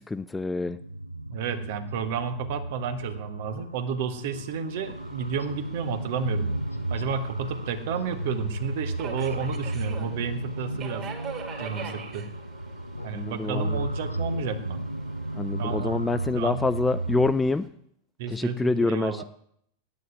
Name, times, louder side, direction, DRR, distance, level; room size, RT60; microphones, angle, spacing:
voice 1, 0.1-0.8 13.1-13.8 15.3-17.6 18.3-19.2, left 3 dB, 10° left, 13 dB, 0.5 m, -26 dB
sound 1, 0.7-17.3, right 1 dB, 90° right, 0.5 m, -33 dB
voice 2, 1.3-6.5 6.9-11.1 11.6-12.3 13.0-14.8 15.6-16.0 16.3-16.6 18.2-19.2, right 6 dB, 50° right, 9 dB, 1.4 m, -32 dB
Speech synthesizer, 1.9-2.1 2.5-2.6 2.9-3.3 3.7-3.8 4.3-4.5 4.9-5.0 5.4-5.7 6.7-7.0 8.0-8.3 8.6-8.7 9.3-9.6 9.9-10.2 10.6-10.9 11.3-11.4 11.7-12.0 12.9-13.2 13.5-13.6 14.1-14.4 14.8-14.9, left 3 dB, 80° left, 0.9 m, -44 dB
Subway metro underground, 4.8-17.7, right 6 dB, 30° right, 2.5 m, -45 dB
9.4 x 8.4 x 9.6 m, 0.69 s
figure-of-eight pair, 90°, 0 cm